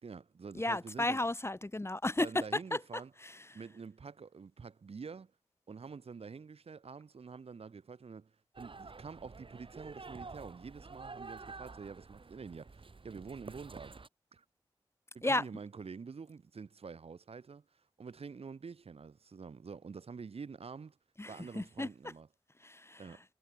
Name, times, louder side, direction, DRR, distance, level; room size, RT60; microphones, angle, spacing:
voice 1, 0.0-1.2 2.2-3.1 3.5-5.3 5.7-8.3 8.6-14.0 14.3-14.4 15.1-17.6 18.0-21.0 21.3-22.3 23.0-23.2, right 5 dB, 85° right, 4.4 m, -47 dB
voice 2, 0.5-2.4 2.7-2.8 3.2-3.4 15.2-15.4 21.2-21.9 22.6-23.0, left 2 dB, 25° left, 1.6 m, -33 dB
sound 1, 8.5-14.1, right 4 dB, 60° right, 4.6 m, -49 dB
cardioid pair, 45°, 10 cm